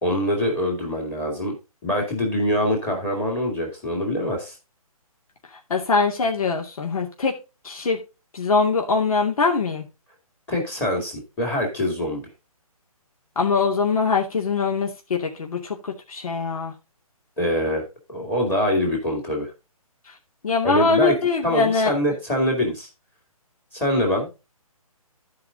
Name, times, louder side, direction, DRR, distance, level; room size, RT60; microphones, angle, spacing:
voice 1, 0.0-1.5 1.8-4.5 10.5-12.2 17.4-19.5 20.6-21.1 21.4-22.9 23.7-24.3, equal, 10° left, 2.2 m, -24 dB
voice 2, 5.7-7.3 7.6-8.0 8.3-9.8 13.4-16.7 20.4-21.9, left 4 dB, 65° left, 2.3 m, -22 dB
13.0 x 4.9 x 3.8 m
hypercardioid pair, 165°, 19 cm